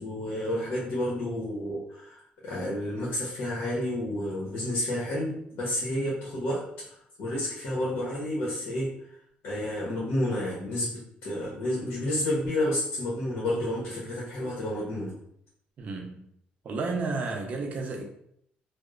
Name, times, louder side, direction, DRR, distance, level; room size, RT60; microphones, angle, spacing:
voice 1, 0.0-8.9 9.4-15.2, left 1 dB, 75° left, -5 dB, 0.8 m, -30 dB
voice 2, 15.8-16.3 16.6-18.0, right 3 dB, 50° right, 2 dB, 0.5 m, -32 dB
2.9 x 2.0 x 2.4 m, 0.72 s
cardioid pair, 125°, 3 cm